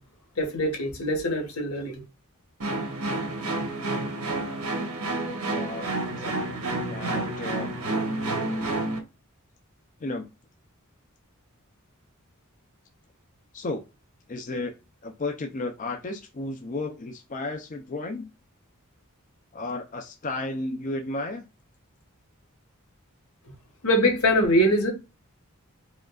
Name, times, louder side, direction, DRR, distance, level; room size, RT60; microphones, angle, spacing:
voice 1, 0.4-2.0 23.8-24.9, equal, 85° left, 1.4 m, -23 dB
sound 1, 2.6-9.0, right 2 dB, 80° right, 1.2 m, -29 dB
voice 2, 5.2-7.8 8.4-8.6 10.0-10.3 13.5-13.8 14.3-14.7 15.0-18.3 19.5-21.5, left 2 dB, 35° left, 0.5 m, -34 dB
5.0 x 2.4 x 2.3 m
head